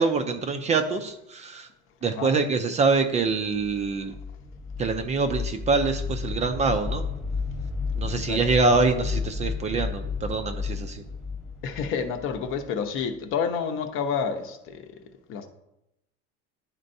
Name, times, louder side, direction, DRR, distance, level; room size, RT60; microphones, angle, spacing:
voice 1, 0.0-1.7 2.0-4.1 4.8-7.0 8.0-11.0, right 4 dB, 25° right, 0.4 m, -25 dB
sound 1, 3.5-13.2, left 5 dB, ahead, 1.0 m, -32 dB
voice 2, 11.6-14.8 15.3-15.5, left 6 dB, 45° left, 0.8 m, -29 dB
11.0 x 4.3 x 2.6 m
cardioid pair, 140°, 29 cm